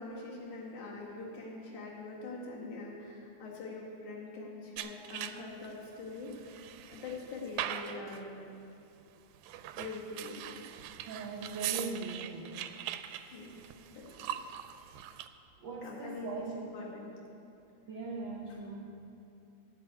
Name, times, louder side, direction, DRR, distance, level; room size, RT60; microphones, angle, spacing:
voice 1, 0.0-8.5 9.8-10.6 13.3-13.6 13.9-14.3 15.8-17.1, left 3 dB, 75° left, -4 dB, 3.2 m, -43 dB
sound 1, 4.8-5.7 6.2-8.2 9.3-15.3, right 11 dB, 85° right, 2.0 m, -41 dB
voice 2, 11.0-12.5 14.8-14.9 15.6-16.5 17.9-18.9, right 4 dB, 70° right, -3 dB, 1.1 m, -40 dB
12.5 x 6.2 x 8.9 m, 2.7 s
omnidirectional pair, 3.5 m